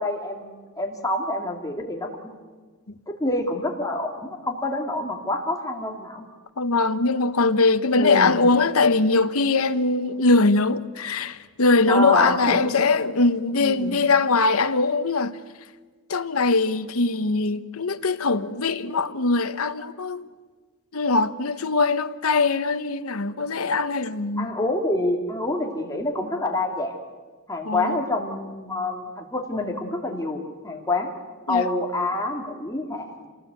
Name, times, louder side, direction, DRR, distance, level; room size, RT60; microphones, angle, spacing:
voice 1, 0.0-2.3 3.1-6.2 8.0-8.4 11.9-12.7 13.6-14.0 24.4-26.9 27.5-31.1 31.5-33.3, left 2 dB, 15° left, 2.5 m, -27 dB
voice 2, 6.6-15.4 16.1-20.2 20.9-24.5 27.6-28.0 31.5-31.7, left 3 dB, 70° left, 1.0 m, -21 dB
27.0 x 19.0 x 8.2 m
head